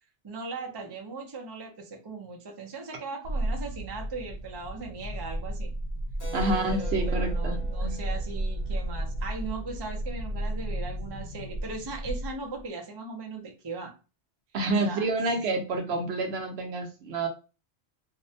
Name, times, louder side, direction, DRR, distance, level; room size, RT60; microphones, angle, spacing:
voice 1, 0.2-5.7 6.6-13.9 14.8-15.1, right 3 dB, 35° right, 2 dB, 0.4 m, -38 dB
sound 1, 3.2-12.6, right 1 dB, 85° left, 0.9 m, -32 dB
Keyboard (musical), 6.2-10.3, right 2 dB, 40° left, 0.8 m, -45 dB
voice 2, 6.3-8.0 14.5-17.3, right 2 dB, 70° right, 3 dB, 0.8 m, -28 dB
2.5 x 2.1 x 2.6 m, 0.32 s
omnidirectional pair, 1.2 m